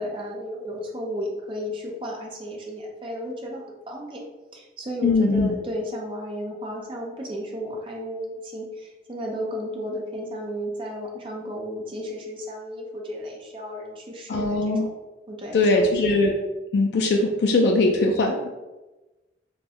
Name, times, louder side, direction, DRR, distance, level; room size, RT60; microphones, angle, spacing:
voice 1, 0.0-4.2 4.5-15.0 15.3-16.1, equal, 30° right, -1 dB, 0.5 m, -33 dB
voice 2, 5.0-5.5 14.3-14.9 15.5-16.3 16.7-18.5, left 2 dB, 65° left, 1 dB, 0.3 m, -20 dB
2.5 x 2.2 x 3.4 m, 1.1 s
head